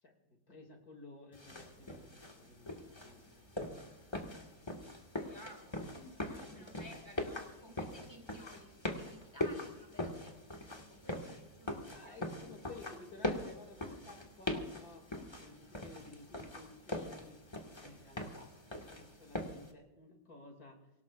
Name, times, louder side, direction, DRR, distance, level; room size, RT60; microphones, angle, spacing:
voice 1, 0.0-4.0 6.4-6.7 11.9-15.1 15.4-17.4 17.8-18.5 18.8-20.9, left 2 dB, 55° left, 3 dB, 2.9 m, -55 dB
sound 1, 1.3-19.7, left 1 dB, 15° left, 1.7 m, -42 dB
voice 2, 4.9-8.7 8.9-12.7, equal, 15° right, 1 dB, 2.7 m, -56 dB
26.0 x 17.5 x 2.5 m, 0.99 s
omnidirectional pair, 1.9 m